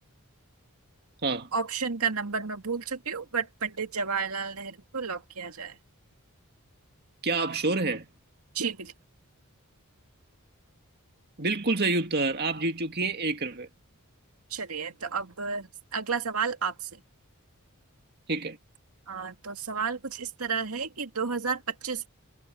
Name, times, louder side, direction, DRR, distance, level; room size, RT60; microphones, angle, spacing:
voice 1, 1.5-5.7 8.6-8.9 14.5-16.7 19.1-22.1, right 5 dB, 80° right, 2.2 m, -31 dB
voice 2, 7.2-8.1 11.4-13.7 18.3-18.6, right 3 dB, 45° right, 2.2 m, -27 dB
head